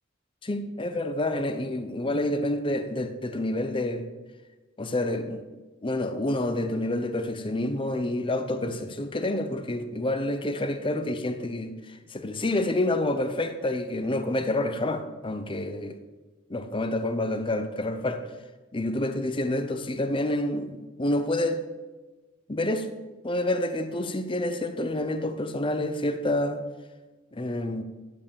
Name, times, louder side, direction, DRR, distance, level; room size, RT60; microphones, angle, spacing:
voice 1, 0.4-4.1 4.8-5.4 5.8-11.7 12.1-15.9 16.5-18.2 18.7-21.6 22.5-22.9 23.2-26.6 27.3-27.8, left 1 dB, 25° left, 0.7 m, -28 dB
10.5 x 5.6 x 6.9 m
head